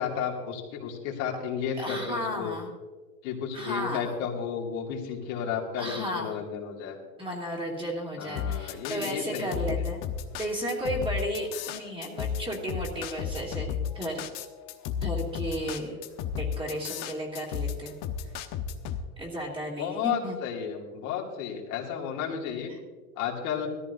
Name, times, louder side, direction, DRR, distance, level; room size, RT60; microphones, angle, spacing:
voice 1, 0.0-2.6 3.2-7.0 8.2-9.8 19.8-22.7 23.2-23.7, left 7 dB, 60° left, -1 dB, 2.6 m, -33 dB
voice 2, 1.8-2.7 3.5-4.3 5.8-6.4 7.2-10.0 10.4-13.7 13.9-14.3 15.0-16.0 16.4-17.9 19.2-20.4 22.7-22.8, equal, 10° right, -2 dB, 2.6 m, -33 dB
sound 1, 8.4-19.0, left 8 dB, 45° left, 1.1 m, -33 dB
17.5 x 14.0 x 2.7 m, 1.3 s
supercardioid pair, 130°, 46 cm